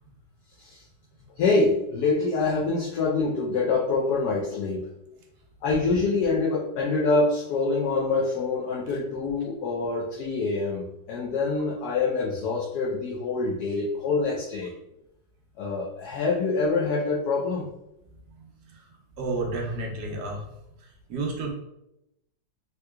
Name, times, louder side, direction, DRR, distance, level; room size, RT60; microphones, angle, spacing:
voice 1, 1.4-4.9 5.6-14.7 15.6-17.7, left 3 dB, 70° left, -4 dB, 1.1 m, -25 dB
voice 2, 19.2-20.5 21.1-21.5, right 3 dB, 70° right, 0 dB, 1.2 m, -30 dB
3.6 x 2.8 x 2.2 m, 0.86 s
omnidirectional pair, 1.9 m